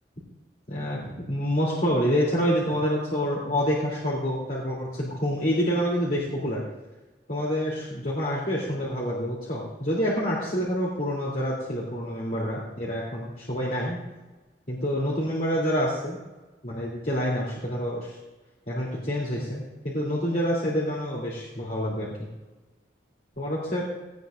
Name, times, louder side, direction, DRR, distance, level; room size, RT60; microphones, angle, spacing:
voice 1, 0.7-6.6 7.3-14.0 14.7-16.2 16.6-18.2 18.7-22.1 23.4-23.8, equal, 45° left, -5 dB, 3.3 m, -27 dB
18.5 x 18.0 x 2.6 m, 1.2 s
head